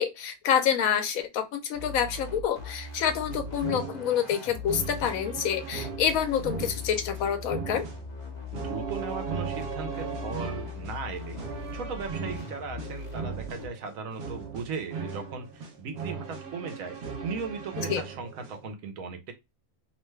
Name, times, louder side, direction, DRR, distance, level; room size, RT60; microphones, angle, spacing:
voice 1, 0.0-7.9 17.8-18.0, left 8 dB, 75° left, 1.1 m, -27 dB
sound 1, 1.7-13.7, left 3 dB, 45° left, 0.6 m, -40 dB
sound 2, 3.3-18.7, right 5 dB, 55° right, 0.8 m, -38 dB
voice 2, 8.5-11.4 11.7-17.0 17.2-19.3, right 5 dB, 75° right, 1.2 m, -37 dB
2.9 x 2.2 x 3.1 m
omnidirectional pair, 1.5 m